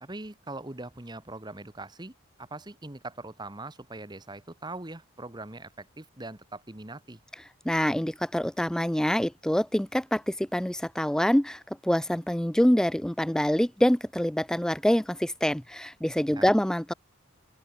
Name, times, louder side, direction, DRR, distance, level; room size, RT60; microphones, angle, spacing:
voice 1, 0.0-2.1 2.4-7.2 16.3-16.5, right 2 dB, 20° right, 1.3 m, -41 dB
voice 2, 7.6-16.9, equal, 5° left, 0.3 m, -25 dB
open air
head